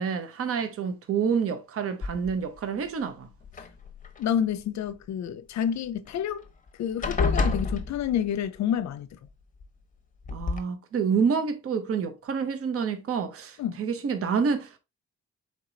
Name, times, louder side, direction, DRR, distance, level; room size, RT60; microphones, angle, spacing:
voice 1, 0.0-3.3 10.3-14.8, right 6 dB, 50° right, 0.8 m, -28 dB
sound 1, 2.0-2.6 3.4-4.3 6.1-6.2 6.5-6.7 7.0-8.5 9.6-9.7 10.2-10.6, left 4 dB, 25° left, 1.0 m, -29 dB
voice 2, 4.2-6.4 6.8-9.1 13.6-13.8, left 9 dB, 65° left, 0.6 m, -28 dB
4.5 x 3.0 x 3.9 m
cardioid pair, 90°, 30 cm